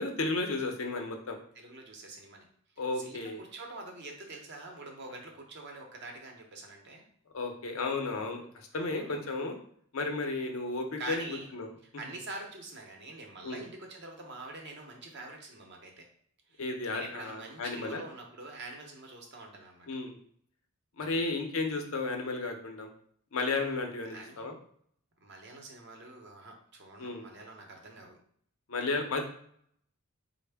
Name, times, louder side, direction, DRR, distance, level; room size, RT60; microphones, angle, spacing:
voice 1, 0.0-1.4 2.8-3.4 7.3-8.4 8.7-9.6 9.9-11.3 11.5-11.7 13.4-13.6 16.6-18.0 19.9-20.1 21.0-22.9 23.3-24.6 27.0-27.3 28.7-29.2, left 3 dB, 70° left, 3 dB, 0.6 m, -33 dB
voice 2, 1.5-2.4 3.0-7.0 8.7-9.2 11.0-11.5 12.0-16.1 16.5-19.9 21.0-21.4 24.1-24.4 25.2-28.2, right 2 dB, 55° right, 1 dB, 0.8 m, -45 dB
4.2 x 2.1 x 3.3 m, 0.63 s
head